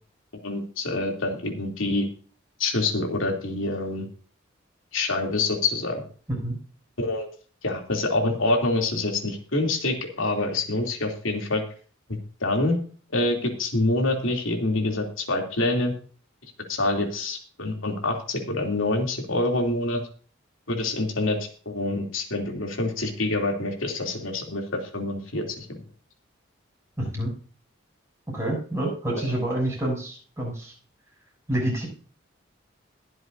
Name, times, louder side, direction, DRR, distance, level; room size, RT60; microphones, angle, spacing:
voice 1, 0.4-2.1 2.6-4.1 4.9-6.0 7.0-7.3 7.6-11.6 12.4-12.8 13.1-15.9 16.7-20.0 20.7-21.4 21.6-25.8 29.2-29.3, left 2 dB, 80° left, 2 dB, 3.0 m, -26 dB
voice 2, 27.0-27.3 28.3-30.7 31.5-31.9, right 1 dB, 15° right, -3 dB, 7.4 m, -28 dB
22.0 x 7.8 x 2.7 m, 0.40 s
head